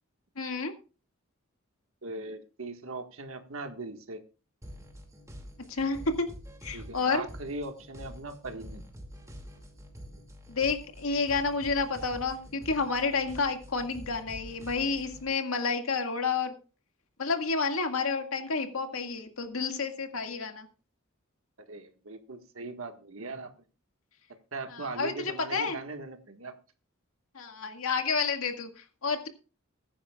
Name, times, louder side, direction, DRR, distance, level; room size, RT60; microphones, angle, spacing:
voice 1, 0.4-0.7 5.7-6.3 6.6-7.2 10.5-16.5 17.2-20.7 24.7-25.8 27.3-29.3, left 4 dB, 85° left, 6 dB, 2.0 m, -30 dB
voice 2, 2.0-4.2 6.7-8.8 21.7-23.5 24.5-26.5, right 2 dB, 70° right, 7 dB, 1.7 m, -39 dB
sound 1, 4.6-15.3, equal, 15° right, 2.4 m, -47 dB
21.0 x 9.9 x 2.4 m, 0.35 s
head